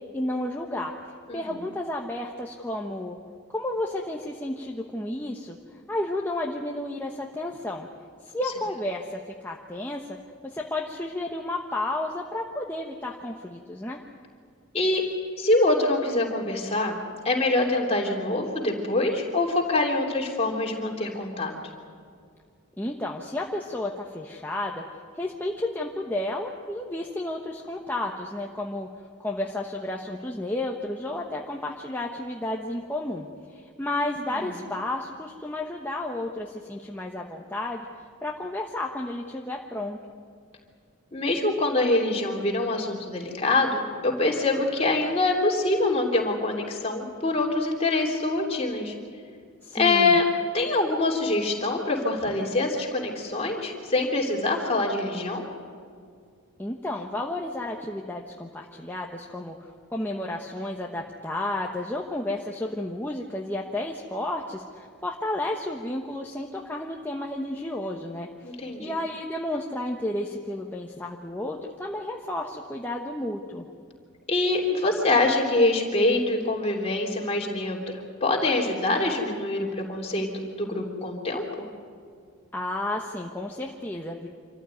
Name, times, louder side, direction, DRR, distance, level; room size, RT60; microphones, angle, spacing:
voice 1, 0.1-0.9 1.3-3.2 3.5-5.6 5.9-7.9 8.2-10.2 10.4-14.0 22.8-24.8 25.1-28.9 29.2-33.3 33.5-37.9 38.2-40.0 49.6-50.2 56.6-59.5 59.9-68.3 68.8-73.6 82.5-84.3, left 1 dB, 10° left, -1 dB, 1.1 m, -32 dB
voice 2, 15.4-17.0 17.2-21.5 34.3-34.4 41.1-48.9 49.7-50.2 50.5-55.4 68.4-69.0 74.3-77.8 78.2-80.3 80.6-81.7, left 2 dB, 30° left, 0 dB, 3.3 m, -24 dB
26.5 x 15.0 x 9.2 m, 2.2 s
head